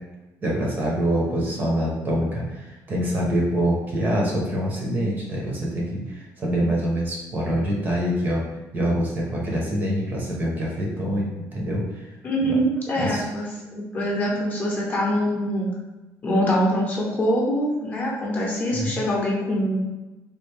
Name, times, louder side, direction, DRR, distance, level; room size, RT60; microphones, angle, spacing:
voice 1, 0.4-8.4 8.7-11.8 12.4-12.5 13.0-13.2 18.7-18.9, equal, 30° right, -3 dB, 0.8 m, -25 dB
voice 2, 12.2-13.5 13.8-15.7 16.2-19.8, equal, 25° left, -4 dB, 0.8 m, -24 dB
3.3 x 2.4 x 3.3 m, 1.1 s
cardioid pair, 170°, 7 cm